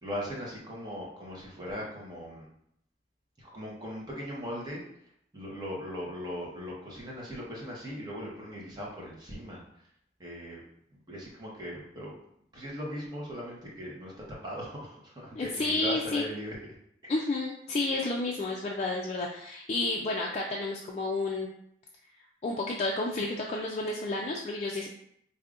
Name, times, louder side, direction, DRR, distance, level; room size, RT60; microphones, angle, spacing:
voice 1, 0.0-2.5 3.4-4.8 5.3-9.6 10.2-10.6 11.1-12.1 12.5-16.7 17.0-17.3, equal, 25° right, -4 dB, 1.0 m, -39 dB
voice 2, 15.3-16.2 17.1-21.5 22.4-24.9, left 2 dB, 35° left, -1 dB, 0.3 m, -31 dB
4.8 x 2.6 x 2.5 m, 0.71 s
head